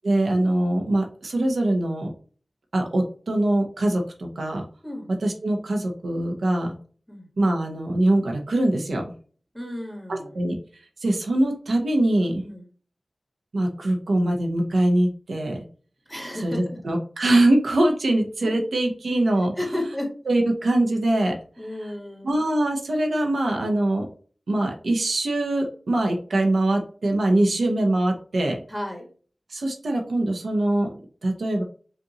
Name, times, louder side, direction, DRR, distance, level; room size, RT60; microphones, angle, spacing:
voice 1, 0.0-2.1 2.7-4.6 5.2-6.7 7.4-9.0 10.1-10.6 11.0-12.4 13.5-15.6 16.4-19.5 20.3-21.4 22.2-24.1 24.5-28.6 29.5-30.9 31.2-31.6, right 1 dB, 90° right, 2 dB, 0.9 m, -23 dB
voice 2, 9.5-10.3 12.4-12.7 16.1-16.8 18.4-18.5 19.5-20.1 21.6-22.4 28.7-29.1, left 1 dB, 5° right, 1 dB, 1.6 m, -33 dB
5.2 x 2.6 x 2.9 m, 0.42 s
wide cardioid pair, 75°, 0 cm